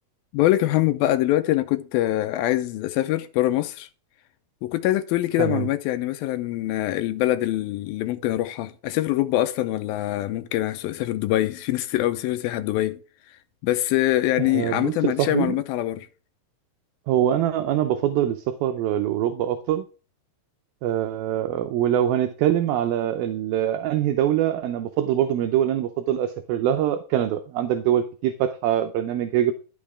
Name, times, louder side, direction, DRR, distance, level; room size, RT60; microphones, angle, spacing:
voice 1, 0.3-3.9 4.6-13.0 13.6-16.1, left 15 dB, 80° left, 2.2 m, -24 dB
voice 2, 14.4-15.6 17.1-19.8 20.8-29.5, right 11 dB, 75° right, 2.3 m, -24 dB
10.5 x 6.1 x 4.8 m
omnidirectional pair, 4.8 m